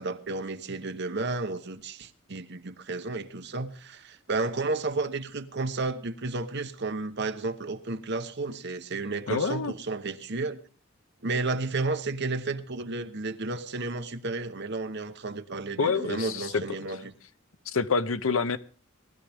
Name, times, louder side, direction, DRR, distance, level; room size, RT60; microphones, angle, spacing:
voice 1, 0.0-10.6 11.2-17.1, right 3 dB, 55° right, 1.0 m, -32 dB
voice 2, 9.3-9.7 15.8-16.6 17.7-18.6, left 5 dB, 80° left, 0.8 m, -27 dB
19.5 x 13.0 x 3.5 m
head